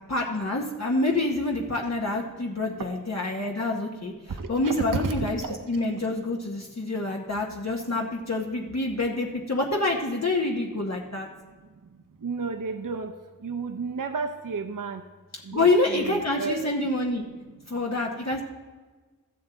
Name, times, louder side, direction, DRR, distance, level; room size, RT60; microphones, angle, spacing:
voice 1, 0.1-4.1 4.5-5.4 5.7-11.3 15.5-17.2 17.7-18.4, left 2 dB, 50° left, -1 dB, 1.0 m, -27 dB
voice 2, 4.3-5.8 6.8-6.9 11.3-15.0 15.4-16.7 17.6-17.8, right 4 dB, 65° right, 5 dB, 0.7 m, -33 dB
14.5 x 7.5 x 3.8 m, 1.4 s
wide cardioid pair, 65°, 35 cm